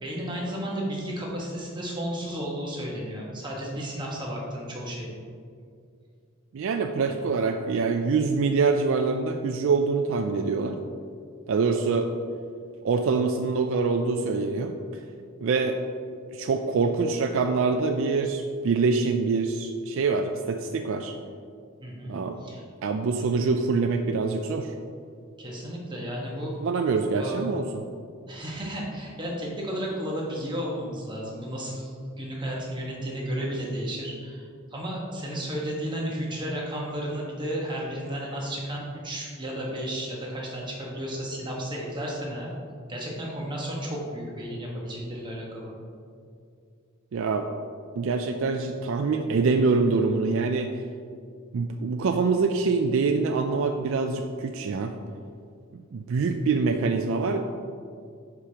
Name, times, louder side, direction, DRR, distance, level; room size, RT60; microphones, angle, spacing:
voice 1, 0.0-5.2 7.1-7.2 21.8-22.6 25.4-26.5 27.2-27.6 28.3-42.5 42.9-45.7, equal, 20° right, -4 dB, 1.3 m, -33 dB
voice 2, 6.5-10.8 11.5-12.1 12.8-14.8 15.4-15.8 16.3-21.1 22.1-22.4 22.8-24.7 26.6-27.8 47.1-47.5 48.0-50.7 51.5-54.9 55.9-57.4, right 4 dB, 65° right, 5 dB, 0.4 m, -25 dB
10.5 x 4.9 x 2.9 m, 2.3 s
head